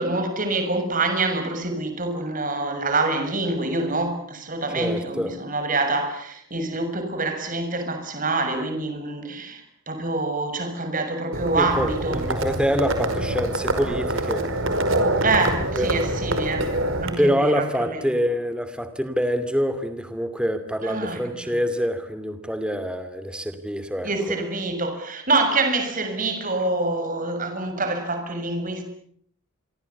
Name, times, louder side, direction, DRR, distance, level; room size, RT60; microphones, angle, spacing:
voice 1, 0.0-12.3 15.2-16.7 17.0-18.2 20.8-21.2 21.4-21.6 24.0-28.8, right 2 dB, 40° right, 6.8 m, -26 dB
voice 2, 4.7-5.3 11.6-15.2 15.7-15.9 17.2-24.1, equal, 5° right, 2.6 m, -26 dB
Livestock farm animals working animals, 11.3-17.1, right 1 dB, 65° right, 5.2 m, -25 dB
29.0 x 24.0 x 8.5 m
head